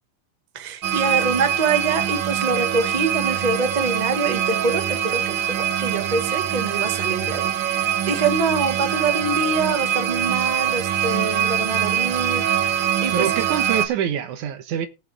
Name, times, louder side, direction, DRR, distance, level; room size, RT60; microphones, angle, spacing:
voice 1, 0.5-13.3, right 4 dB, 35° right, 0.7 m, -25 dB
sound 1, 0.8-13.9, right 10 dB, 65° right, 1.1 m, -23 dB
voice 2, 13.1-14.9, right 9 dB, 85° right, 2.6 m, -25 dB
17.5 x 6.6 x 3.4 m
omnidirectional pair, 3.4 m